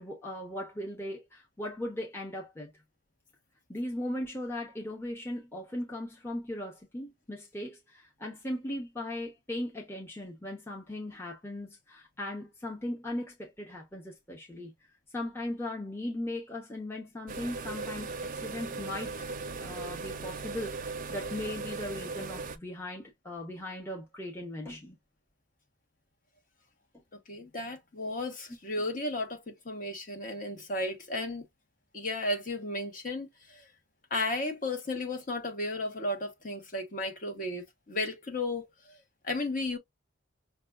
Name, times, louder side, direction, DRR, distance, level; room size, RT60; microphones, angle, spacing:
voice 1, 0.0-2.7 3.7-14.7 15.1-19.3 19.6-25.0, left 1 dB, 10° left, 0.8 m, -38 dB
sound 1, 17.3-22.6, right 3 dB, 45° right, 0.5 m, -38 dB
voice 2, 27.3-31.4 31.9-33.7 34.1-39.0 39.2-39.8, left 2 dB, 45° left, 1.2 m, -34 dB
5.8 x 2.3 x 2.4 m
head